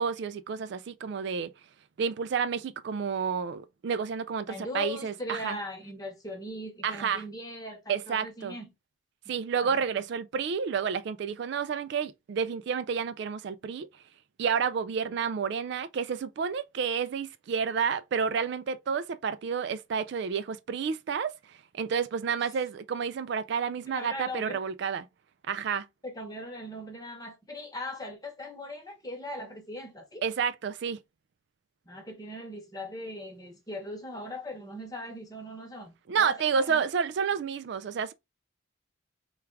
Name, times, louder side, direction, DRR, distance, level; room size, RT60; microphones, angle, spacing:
voice 1, 0.0-1.5 2.0-5.6 6.8-7.2 7.9-8.5 9.3-13.9 14.4-25.1 25.5-25.9 30.2-31.0 36.1-38.1, right 6 dB, 55° right, 0.3 m, -30 dB
voice 2, 4.5-8.7 9.2-9.4 9.6-10.0 22.4-22.5 24.0-24.6 26.0-30.2 31.9-36.8, left 1 dB, 20° left, 1.0 m, -40 dB
3.4 x 2.4 x 4.4 m
head